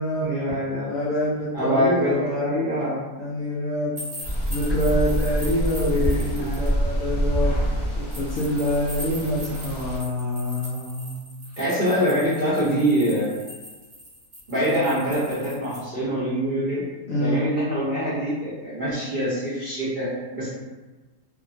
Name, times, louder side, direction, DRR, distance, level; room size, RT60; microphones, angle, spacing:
voice 1, 0.2-0.9 1.5-3.0 5.9-6.7 11.6-13.3 14.5-16.8 17.1-20.5, equal, 45° right, -12 dB, 0.6 m, -24 dB
voice 2, 0.9-2.4 3.2-4.0 4.5-7.6 8.0-11.2 17.1-17.4, left 1 dB, 70° left, -7 dB, 0.8 m, -26 dB
sound 1, 4.0-6.7 8.1-15.8, left 1 dB, 25° right, 0.9 m, -41 dB
sound 2, 4.2-10.0, equal, 40° left, 0.4 m, -26 dB
2.8 x 2.2 x 2.5 m, 1.2 s
omnidirectional pair, 1.8 m